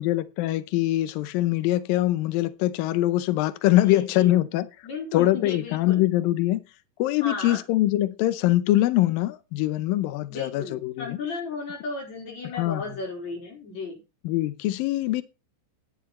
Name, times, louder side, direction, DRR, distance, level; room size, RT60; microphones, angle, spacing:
voice 1, 0.0-4.7 5.1-6.6 7.0-11.2 12.6-12.8 14.3-15.2, left 15 dB, 90° left, 2.0 m, -23 dB
voice 2, 3.8-4.5 4.8-6.1 7.2-7.6 10.3-14.0, left 4 dB, 40° left, 5.6 m, -34 dB
12.5 x 9.9 x 4.3 m
omnidirectional pair, 5.0 m